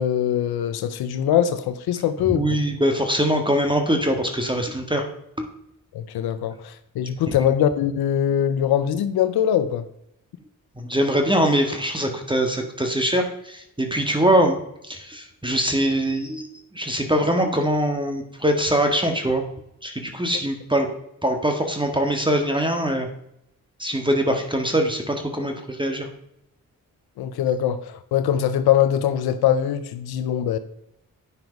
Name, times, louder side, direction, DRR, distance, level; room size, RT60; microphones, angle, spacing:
voice 1, 0.0-2.5 5.9-9.8 27.2-30.6, left 10 dB, 90° left, 11 dB, 0.7 m, -22 dB
voice 2, 2.3-5.1 5.4-5.5 10.8-14.6 14.9-16.5 16.7-19.4 19.8-20.9 21.2-23.1 23.8-26.1, equal, 15° right, 4 dB, 1.7 m, -22 dB
9.8 x 5.8 x 5.2 m, 0.78 s
supercardioid pair, 45°, 37 cm